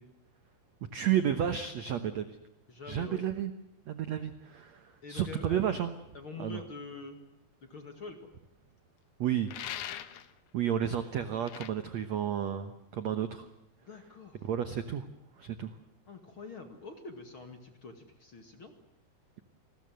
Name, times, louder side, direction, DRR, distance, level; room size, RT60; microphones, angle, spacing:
voice 1, 0.9-2.4 2.8-3.5 3.9-5.9 6.4-6.6 9.2-9.5 10.5-13.5 14.4-15.1 15.4-15.7, right 9 dB, 70° right, 10 dB, 1.6 m, -32 dB
voice 2, 2.7-3.2 5.0-5.8 6.1-7.2 7.6-8.3 13.8-14.5 16.1-18.7, left 4 dB, 40° left, 6 dB, 2.1 m, -45 dB
sound 1, 9.5-10.3 11.5-11.7, left 11 dB, 65° left, 2.0 m, -40 dB
28.5 x 21.0 x 7.8 m, 0.83 s
omnidirectional pair, 4.8 m